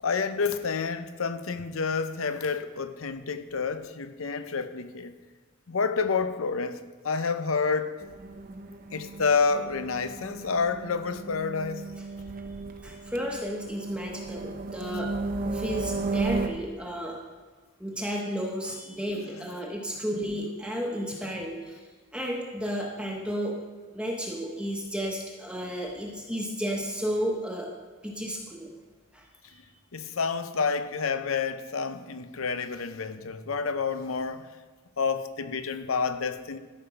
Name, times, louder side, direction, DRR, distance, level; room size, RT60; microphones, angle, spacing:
voice 1, 0.0-5.1 5.7-8.0 8.9-11.9 19.1-19.3 29.9-34.5 35.0-36.6, left 5 dB, 85° left, 0.7 m, -29 dB
sound 1, 8.0-16.5, right 3 dB, 45° right, 0.7 m, -35 dB
voice 2, 12.8-15.1 15.4-17.2 17.8-21.8 22.1-23.6 23.9-27.7 28.0-28.7 29.1-29.2, equal, 5° right, 1.1 m, -32 dB
13.0 x 5.2 x 5.7 m
head